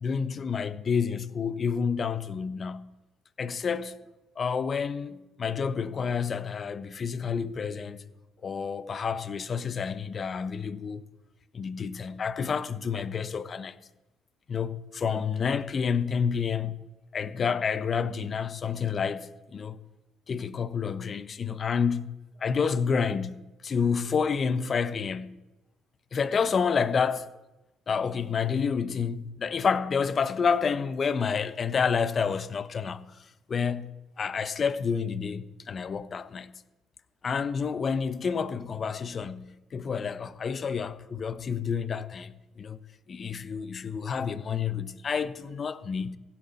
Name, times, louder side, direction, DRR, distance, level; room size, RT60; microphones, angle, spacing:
voice 1, 0.0-2.9 3.4-4.0 4.4-8.0 8.4-11.0 11.5-13.8 14.5-16.7 17.1-19.8 20.3-25.4 26.1-27.3 27.9-33.1 33.5-36.5 37.2-42.8 43.1-46.2, left 6 dB, 45° left, 0.7 m, -29 dB
16.0 x 10.5 x 4.1 m
supercardioid pair, 70°, 0 cm